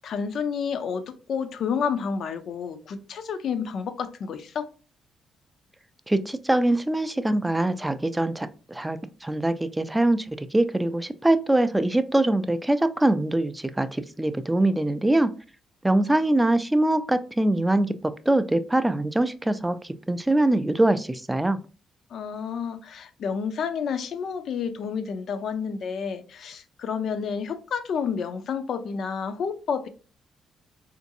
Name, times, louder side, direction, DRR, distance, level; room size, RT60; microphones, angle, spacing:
voice 1, 0.0-4.7 22.1-29.9, left 6 dB, 65° left, 0.5 m, -30 dB
voice 2, 6.1-15.3 15.8-21.6, right 1 dB, 10° right, 0.3 m, -23 dB
3.8 x 2.5 x 2.6 m
cardioid pair, 90°, 0 cm